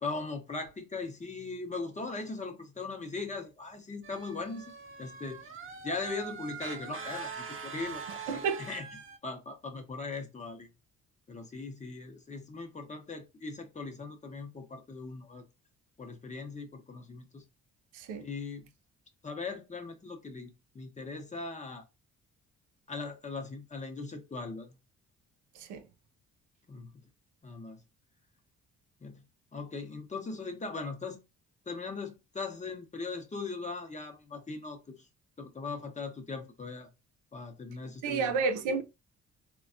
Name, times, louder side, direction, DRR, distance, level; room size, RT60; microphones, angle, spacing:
voice 1, 0.0-4.7 5.0-5.4 5.8-8.9 9.2-10.7 11.3-15.4 16.0-17.4 18.2-18.7 19.2-21.8 22.9-24.8 26.7-26.9 27.4-27.8 29.0-29.2 29.5-31.2 31.7-35.1 35.4-36.9 37.3-38.3, left 3 dB, 25° left, 0.7 m, -39 dB
sound 1, 4.0-9.2, right 5 dB, 45° right, 0.8 m, -43 dB
voice 2, 8.3-8.6 17.9-18.3 25.5-25.8 38.0-38.8, right 5 dB, 90° right, 0.6 m, -31 dB
3.3 x 2.2 x 2.4 m
cardioid pair, 90°, 30 cm